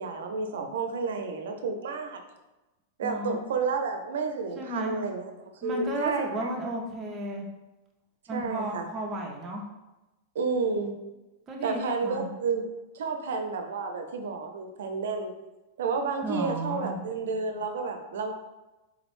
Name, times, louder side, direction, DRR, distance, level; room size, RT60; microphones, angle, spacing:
voice 1, 0.0-2.2 3.0-5.3 5.6-6.5 8.3-8.9 10.3-10.9 11.6-12.6 12.9-15.3 15.8-18.3, right 4 dB, 90° right, 4 dB, 0.4 m, -31 dB
voice 2, 3.0-3.4 4.6-5.0 5.6-7.5 8.3-9.6 11.5-12.3 16.2-17.0, right 1 dB, 15° right, -1 dB, 0.4 m, -33 dB
3.7 x 2.0 x 3.0 m, 1.0 s
supercardioid pair, 175°, 0 cm